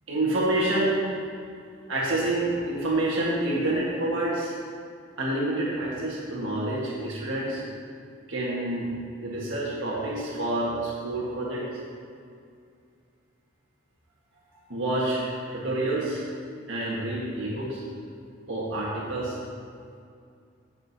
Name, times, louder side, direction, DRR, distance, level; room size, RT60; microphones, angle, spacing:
voice 1, 0.1-1.1 1.9-4.5 5.2-7.6 8.3-8.9 9.2-11.7 14.7-16.2 16.7-17.8 18.5-19.3, right 1 dB, 75° right, -5 dB, 1.5 m, -28 dB
15.5 x 6.2 x 2.8 m, 2.4 s
head